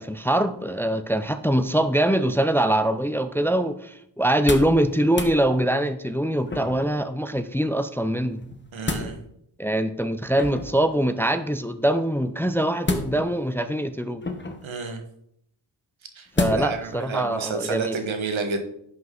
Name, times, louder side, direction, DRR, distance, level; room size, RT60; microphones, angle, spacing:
voice 1, 0.0-8.4 9.6-14.2 16.4-18.0, right 1 dB, 5° left, 10 dB, 0.5 m, -23 dB
sound 1, 4.3-4.8 5.1-5.4 6.5-6.9 8.4-9.1 10.3-10.8 12.8-13.5 14.2-14.7 16.3-16.8 17.3-17.4, left 3 dB, 25° left, 1.0 m, -29 dB
voice 2, 8.7-9.2 14.6-15.0 16.1-18.6, right 4 dB, 85° right, 6 dB, 1.5 m, -30 dB
11.0 x 6.0 x 3.9 m, 0.72 s
wide cardioid pair, 95°, 45 cm